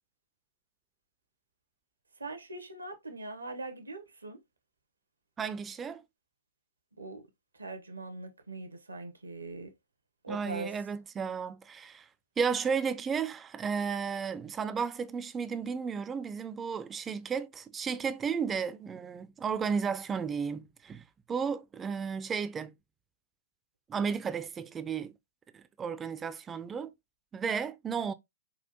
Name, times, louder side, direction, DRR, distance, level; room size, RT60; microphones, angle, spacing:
voice 1, 2.2-4.4 7.0-7.2 7.6-9.7 10.2-10.8, right 2 dB, 80° right, 0.8 m, -41 dB
voice 2, 5.4-6.0 10.3-12.1 12.4-22.7 23.9-25.1 25.5-26.9 27.3-28.1, right 6 dB, 15° right, 0.4 m, -33 dB
5.3 x 2.4 x 2.7 m
figure-of-eight pair, 110°, 0 cm